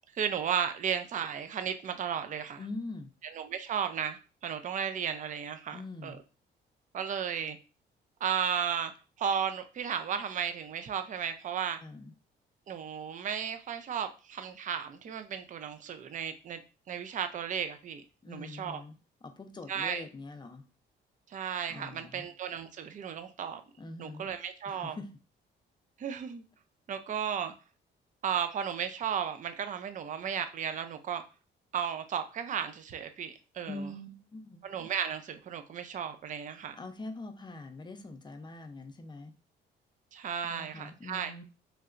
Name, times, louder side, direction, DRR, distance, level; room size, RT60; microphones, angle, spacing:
voice 1, 0.1-2.6 3.2-6.2 6.9-7.6 8.2-8.9 9.2-11.8 12.7-16.6 16.9-18.8 19.7-20.0 21.3-23.6 24.0-25.0 26.0-26.4 26.9-27.5 28.2-31.2 31.7-33.9 34.6-36.8 40.1-41.3, right 8 dB, 40° right, 9 dB, 0.4 m, -34 dB
voice 2, 2.6-3.1 5.7-6.2 11.8-12.1 18.2-18.9 19.2-20.6 21.7-22.3 23.8-24.3 24.7-25.2 33.7-34.6 36.8-39.3 40.4-41.4, left 2 dB, 20° left, 7 dB, 0.5 m, -43 dB
3.1 x 2.8 x 2.4 m, 0.33 s
cardioid pair, 90°, 20 cm